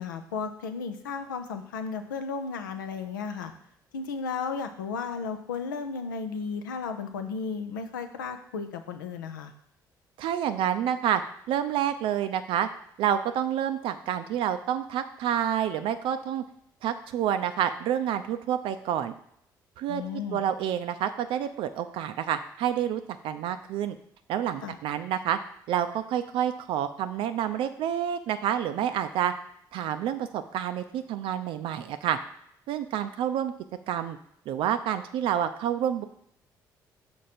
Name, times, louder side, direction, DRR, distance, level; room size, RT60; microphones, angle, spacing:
voice 1, 0.0-3.5 3.9-9.5 19.9-20.4 24.6-24.7, left 5 dB, 80° left, 8 dB, 0.6 m, -34 dB
voice 2, 10.2-11.2 11.5-12.7 13.0-16.4 16.8-19.1 19.8-24.0 24.3-25.4 25.7-29.3 29.7-32.2 32.7-33.5 33.9-34.2 34.5-36.0, right 10 dB, 55° right, 9 dB, 0.4 m, -28 dB
6.1 x 4.5 x 4.2 m, 0.71 s
figure-of-eight pair, 50°, 10 cm